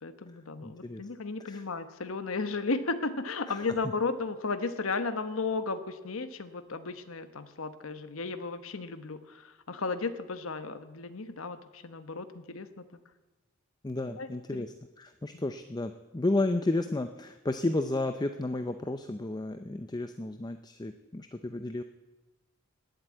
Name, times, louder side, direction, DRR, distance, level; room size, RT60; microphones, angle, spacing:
voice 1, 0.0-12.8 14.2-14.7 15.3-15.4, left 3 dB, 75° left, 11 dB, 1.1 m, -34 dB
voice 2, 0.6-1.0 1.4-1.6 3.5-3.7 13.8-21.8, left 2 dB, 20° left, 9 dB, 0.5 m, -32 dB
18.0 x 7.9 x 9.0 m, 1.1 s
head